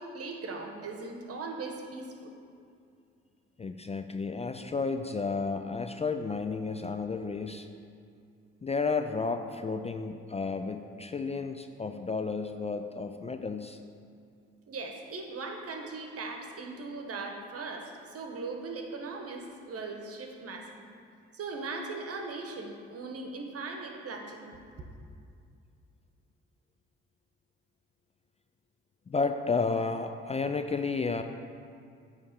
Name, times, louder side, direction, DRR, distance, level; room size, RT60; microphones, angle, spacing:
voice 1, 0.0-2.3 14.7-20.8 21.3-24.6, right 3 dB, 55° right, 3 dB, 1.2 m, -39 dB
voice 2, 3.6-7.7 8.6-13.8 29.1-31.2, left 4 dB, 20° left, 7 dB, 0.4 m, -32 dB
8.9 x 3.3 x 6.6 m, 2.4 s
supercardioid pair, 55°, 29 cm